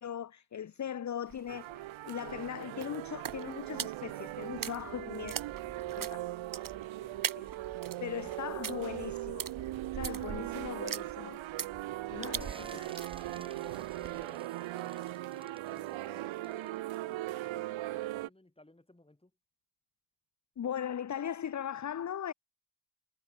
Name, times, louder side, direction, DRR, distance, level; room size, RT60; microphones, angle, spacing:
voice 1, 0.0-5.4 6.0-6.2 7.4-7.5 8.0-9.5 9.9-11.4 12.1-12.9 20.6-22.3, left 9 dB, 40° left, 0.7 m, -39 dB
sound 1, 1.3-14.3, right 8 dB, 45° right, 1.0 m, -43 dB
sound 2, 1.5-18.3, right 16 dB, 75° right, 0.7 m, -39 dB
voice 2, 6.8-7.3 11.9-12.8 13.3-19.3, left 1 dB, 10° left, 2.7 m, -59 dB
sound 3, 12.4-17.7, right 1 dB, 10° right, 4.1 m, -58 dB
supercardioid pair, 40°, 47 cm